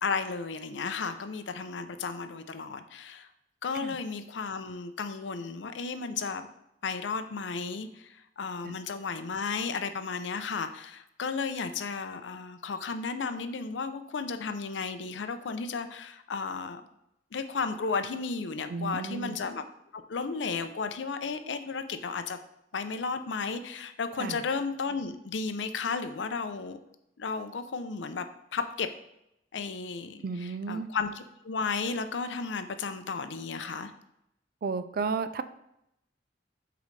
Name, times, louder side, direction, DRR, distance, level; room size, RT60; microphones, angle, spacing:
voice 1, 0.0-3.3 3.6-6.5 6.8-16.8 17.3-19.6 19.9-22.4 22.7-26.8 27.2-28.2 28.5-28.9 29.5-33.9, left 4 dB, 80° left, 9 dB, 0.5 m, -34 dB
voice 2, 18.7-19.4 24.2-24.4 30.2-30.9 34.6-35.4, right 4 dB, 55° right, 12 dB, 0.4 m, -33 dB
8.2 x 3.9 x 3.2 m, 0.83 s
head